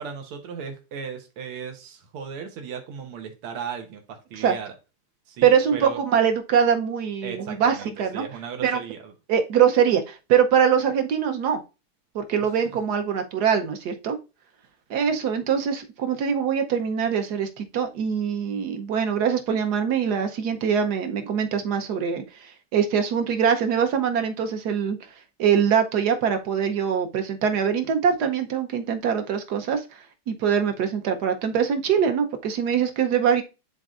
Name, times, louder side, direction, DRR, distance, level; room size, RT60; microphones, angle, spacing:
voice 1, 0.0-4.7 5.3-6.0 7.2-9.1 12.7-12.8, right 6 dB, 85° right, 1.9 m, -36 dB
voice 2, 5.4-8.2 8.6-8.8 9.3-11.6 12.1-14.2 14.9-22.2 22.7-25.0 25.4-29.8 30.3-33.4, right 7 dB, 60° right, 1.1 m, -23 dB
11.0 x 3.9 x 2.5 m
omnidirectional pair, 2.4 m